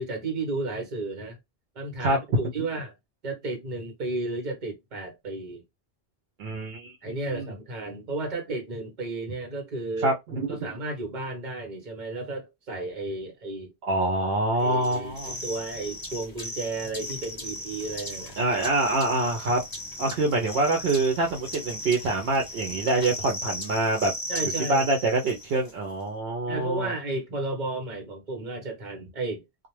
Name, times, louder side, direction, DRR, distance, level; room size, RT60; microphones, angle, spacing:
voice 1, 0.0-1.4 1.7-3.0 3.2-5.6 7.0-10.1 10.5-13.7 14.6-18.4 24.3-24.9 26.5-29.4, right 2 dB, 45° right, 1.1 m, -33 dB
voice 2, 2.0-2.4 6.4-6.9 7.3-7.5 10.0-10.7 13.8-15.4 18.4-19.6 20.0-24.1 24.7-26.9, right 2 dB, 70° right, 0.8 m, -25 dB
sound 1, 14.8-25.7, left 1 dB, 20° left, 0.8 m, -37 dB
2.3 x 2.0 x 3.0 m
omnidirectional pair, 1.1 m